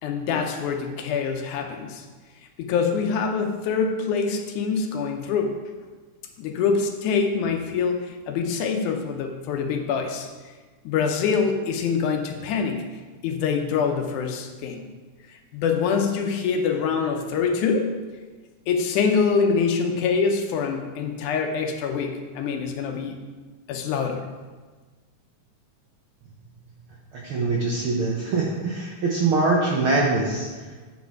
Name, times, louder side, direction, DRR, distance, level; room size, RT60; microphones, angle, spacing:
voice 1, 0.0-2.0 2.6-5.6 6.4-10.3 10.8-12.8 13.2-14.8 15.3-17.9 18.7-23.2 23.7-24.2, left 5 dB, 80° left, 4 dB, 2.2 m, -25 dB
voice 2, 27.1-30.5, right 3 dB, 75° right, -3 dB, 1.2 m, -23 dB
8.4 x 4.8 x 4.7 m, 1.4 s
omnidirectional pair, 3.5 m